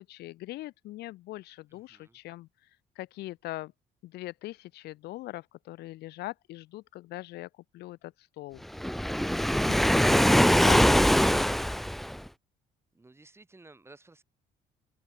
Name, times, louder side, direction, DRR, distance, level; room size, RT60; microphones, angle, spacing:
voice 1, 0.0-2.5 3.0-3.7 4.0-8.6 9.7-9.8 10.6-10.8, left 17 dB, 75° left, 0.8 m, -41 dB
voice 2, 1.7-2.2 12.9-14.2, right 2 dB, 15° right, 4.6 m, -55 dB
Waves surf, 8.8-12.3, equal, ahead, 0.6 m, -22 dB
open air
cardioid pair, 110°, 17 cm